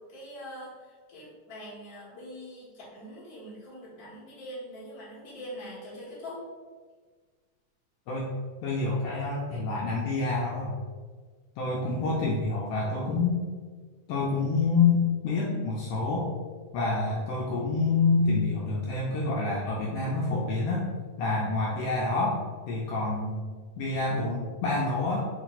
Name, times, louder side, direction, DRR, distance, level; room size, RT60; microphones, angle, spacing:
voice 1, 0.0-6.4, equal, 40° left, -8 dB, 1.5 m, -43 dB
voice 2, 8.6-10.7 11.6-13.4 14.1-16.3 16.7-20.9 21.2-23.5 23.8-25.2, left 3 dB, 85° left, -4 dB, 1.4 m, -27 dB
4.4 x 2.6 x 3.9 m, 1.5 s
omnidirectional pair, 3.4 m